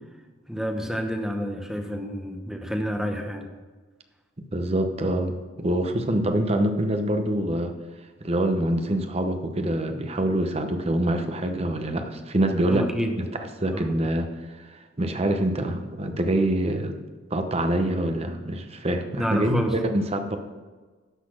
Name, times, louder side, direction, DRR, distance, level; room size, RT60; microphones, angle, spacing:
voice 1, 0.5-3.5 12.7-13.1 13.7-13.9 19.1-19.8, equal, ahead, 4 dB, 0.8 m, -29 dB
voice 2, 4.5-7.7 8.2-12.9 13.2-13.3 13.6-16.9 17.3-20.4, right 1 dB, 30° right, 6 dB, 0.8 m, -25 dB
12.0 x 4.1 x 6.3 m, 1.4 s
head